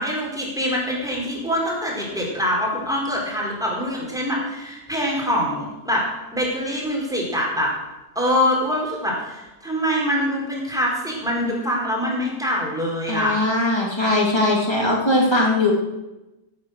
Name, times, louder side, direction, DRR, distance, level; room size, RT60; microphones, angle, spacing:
voice 1, 0.0-6.0 6.3-7.7 8.1-13.4, equal, ahead, -3 dB, 4.2 m, -24 dB
voice 2, 13.1-15.7, left 2 dB, 15° left, -2 dB, 3.0 m, -20 dB
15.0 x 9.0 x 6.6 m, 1.0 s
omnidirectional pair, 1.7 m